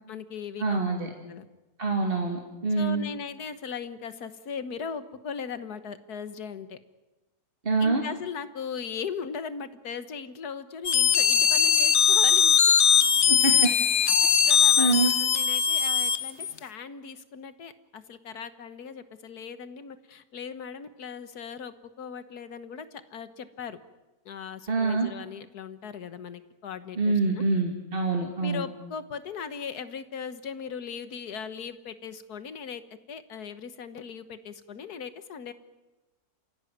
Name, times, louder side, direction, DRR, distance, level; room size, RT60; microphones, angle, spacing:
voice 1, 0.1-0.8 1.2-1.4 2.8-6.8 7.8-12.7 13.4-13.7 14.1-14.2 14.5-14.9 15.2-23.8 24.2-27.1 28.4-32.8 33.1-35.5, left 6 dB, 90° left, 12 dB, 1.8 m, -38 dB
voice 2, 0.6-1.1 1.8-3.0 7.6-8.0 13.3-13.7 14.8-15.1 24.7-25.1 27.0-28.6, right 3 dB, 35° right, 2 dB, 2.5 m, -25 dB
sound 1, 10.8-16.6, left 7 dB, 50° left, 1.1 m, -21 dB
28.5 x 16.0 x 9.4 m, 1.1 s
omnidirectional pair, 1.6 m